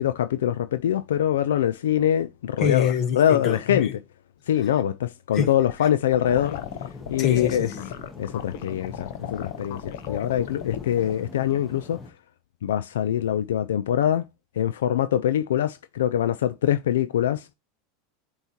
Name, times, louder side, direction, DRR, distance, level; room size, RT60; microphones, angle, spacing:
voice 1, 0.0-3.9 4.5-6.6 7.1-7.7 8.2-12.0 12.6-14.2 14.6-17.5, left 10 dB, 90° left, 0.3 m, -24 dB
voice 2, 2.6-3.9 5.3-5.5 7.2-7.9, left 8 dB, 45° left, 1.3 m, -25 dB
sound 1, 5.6-11.1, left 11 dB, 75° left, 0.7 m, -36 dB
sound 2, 6.3-12.1, left 3 dB, 15° left, 1.2 m, -42 dB
7.9 x 2.9 x 4.3 m
supercardioid pair, 120°, 0 cm